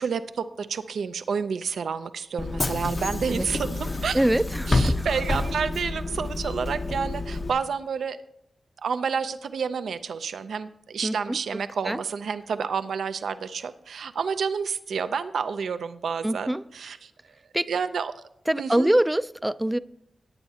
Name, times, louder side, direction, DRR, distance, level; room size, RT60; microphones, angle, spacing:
voice 1, 0.0-4.3 4.7-8.2 8.8-17.1 17.7-18.1 18.6-18.9, right 6 dB, 85° right, 11 dB, 0.5 m, -29 dB
Bus / Engine, 2.4-7.5, left 2 dB, 45° left, 0.8 m, -28 dB
voice 2, 4.1-5.1 11.0-11.4 11.8-12.0 16.2-16.6 17.5-17.7 18.5-19.8, right 1 dB, 10° right, 15 dB, 0.4 m, -24 dB
17.5 x 9.0 x 2.8 m, 0.75 s
cardioid pair, 60°, 0 cm